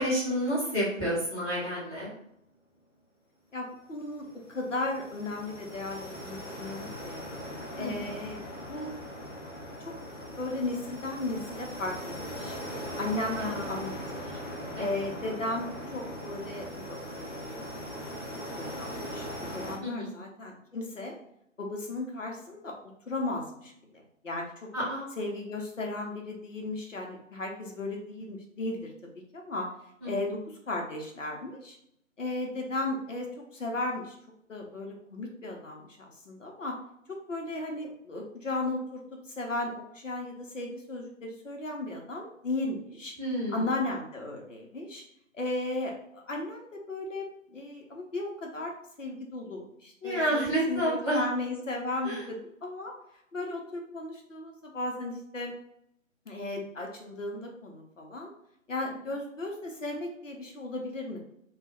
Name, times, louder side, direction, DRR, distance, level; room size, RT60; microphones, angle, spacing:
voice 1, 0.0-2.1 7.8-8.1 13.3-13.8 14.7-14.9 19.8-20.1 24.7-25.1 30.0-30.1 43.2-43.7 50.0-51.2 52.0-52.2, equal, ahead, -13 dB, 1.2 m, -30 dB
voice 2, 3.5-7.2 7.8-8.9 10.4-12.6 13.0-14.4 14.8-17.6 18.5-21.2 21.6-22.7 23.1-24.7 25.2-28.9 29.3-29.7 30.0-31.8 32.2-33.3 33.5-34.2 34.5-36.7 37.1-39.0 39.3-43.1 43.5-45.0 45.3-48.7 49.0-52.9 53.3-55.5 56.3-58.3 58.7-61.2, left 2 dB, 70° left, 1 dB, 0.8 m, -35 dB
sound 1, 4.1-19.8, equal, 20° left, 0.7 m, -40 dB
2.3 x 2.3 x 3.4 m, 0.73 s
figure-of-eight pair, 150°, 39 cm